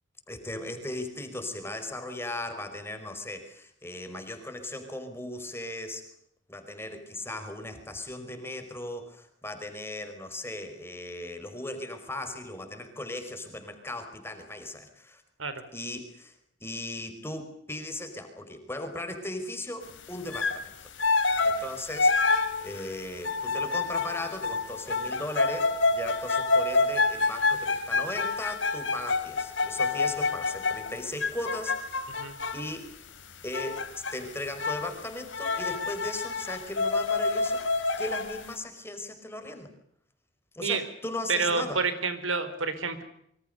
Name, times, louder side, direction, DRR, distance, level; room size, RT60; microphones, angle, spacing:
voice 1, 0.3-6.0 6.5-15.2 15.7-16.3 16.6-20.7 21.4-22.1 22.6-32.1 32.5-32.9 33.4-39.7 40.5-41.8, left 1 dB, 10° left, 7 dB, 5.2 m, -37 dB
sound 1, 20.3-20.6 21.0-32.7 33.5-34.2 34.5-35.0 35.3-38.4, left 3 dB, 70° left, 3.7 m, -28 dB
voice 2, 41.3-43.0, right 4 dB, 90° right, 12 dB, 4.3 m, -28 dB
27.0 x 25.0 x 6.8 m, 0.74 s
head